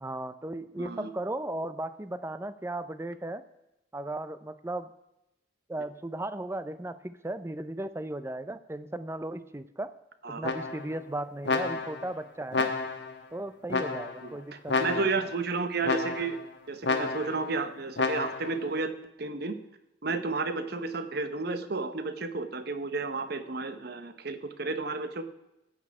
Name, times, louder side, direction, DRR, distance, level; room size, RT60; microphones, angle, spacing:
voice 1, 0.0-3.4 3.9-4.9 5.7-9.9 10.3-12.7 13.3-15.1, right 1 dB, 15° right, 13 dB, 0.5 m, -36 dB
voice 2, 0.8-1.1 10.2-10.5 14.2-16.4 16.7-18.9 19.2-19.6 20.0-25.2, right 3 dB, 55° right, 10 dB, 0.9 m, -32 dB
sound 1, 10.4-11.0 11.4-12.1 12.5-13.2 13.7-14.3 14.7-15.3 15.8-16.4 16.8-17.5 18.0-18.6, left 3 dB, 60° left, 1.3 m, -30 dB
14.0 x 8.7 x 4.8 m, 0.90 s
head